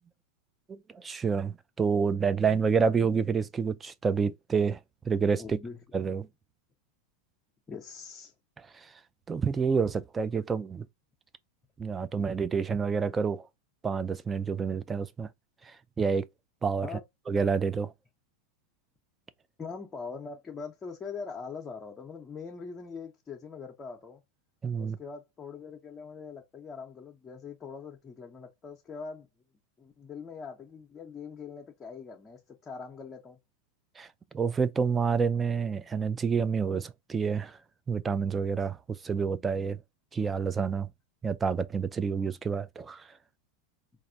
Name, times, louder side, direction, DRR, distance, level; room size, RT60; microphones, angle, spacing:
voice 1, 0.7-4.8 5.1-5.6 5.9-6.3 8.7-8.9 9.3-10.9 11.8-13.5 13.8-15.3 15.7-16.3 16.6-16.9 17.3-17.9 24.6-25.0 34.0-34.1 34.3-37.6 37.9-38.8 39.0-39.8 40.1-40.9 41.2-43.1, right 5 dB, 20° right, 0.4 m, -28 dB
voice 2, 5.4-5.8 7.7-8.3 12.0-12.1 16.8-17.0 19.6-24.2 24.8-29.3 29.8-33.4, left 5 dB, 25° left, 0.8 m, -42 dB
4.0 x 2.5 x 2.7 m
hypercardioid pair, 105°, 0 cm